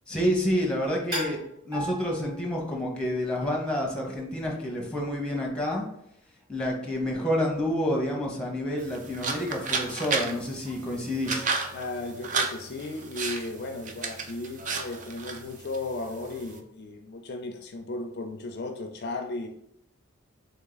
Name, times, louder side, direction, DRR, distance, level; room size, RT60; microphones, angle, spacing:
voice 1, 0.1-5.8 6.5-11.5, equal, 5° left, -1 dB, 0.8 m, -29 dB
sound 1, 1.1-2.7 3.4-3.8 7.8-7.9 8.4-8.7 10.0-11.0 11.3-12.3 12.8-13.0 14.6-15.6 16.0-16.7, equal, 20° right, 1.8 m, -41 dB
sound 2, 8.8-16.6, right 4 dB, 40° right, 0.4 m, -33 dB
voice 2, 11.7-19.5, left 2 dB, 50° left, 5 dB, 0.4 m, -35 dB
3.5 x 3.4 x 3.9 m, 0.75 s
head